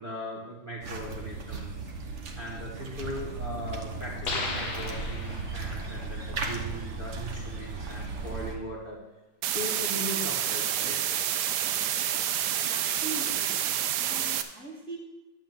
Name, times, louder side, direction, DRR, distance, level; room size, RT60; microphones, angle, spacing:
voice 1, 0.0-1.9 2.3-9.0 9.5-11.0, equal, 25° right, -7 dB, 1.8 m, -39 dB
sound 1, 0.8-8.5, right 3 dB, 45° right, 1.1 m, -36 dB
sound 2, 4.2-5.8, left 3 dB, 75° left, 2.1 m, -34 dB
sound 3, 9.4-14.4, right 10 dB, 70° right, 1.1 m, -28 dB
voice 2, 12.7-15.0, right 3 dB, 5° left, -4 dB, 1.9 m, -41 dB
11.5 x 3.9 x 7.5 m, 1.1 s
omnidirectional pair, 2.2 m